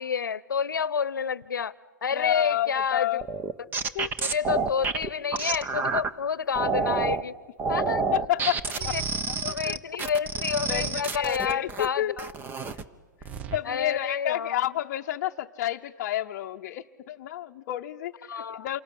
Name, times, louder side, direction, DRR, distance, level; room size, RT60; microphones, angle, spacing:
voice 1, 0.0-1.7 2.0-3.2 3.8-7.3 7.7-8.0 8.9-9.0 9.4-12.3 13.6-14.6 18.3-18.7, left 6 dB, 80° left, 21 dB, 0.9 m, -29 dB
voice 2, 2.1-3.2 3.9-4.1 8.1-9.0 9.3-9.8 10.7-12.2 13.5-18.8, left 13 dB, 45° left, 1 dB, 0.8 m, -30 dB
sound 1, 3.2-6.1 6.6-7.2 7.6-11.9 12.2-12.8 13.2-13.6, right 4 dB, 20° right, 1.2 m, -29 dB
28.5 x 24.5 x 8.4 m, 1.4 s
hypercardioid pair, 120°, 10 cm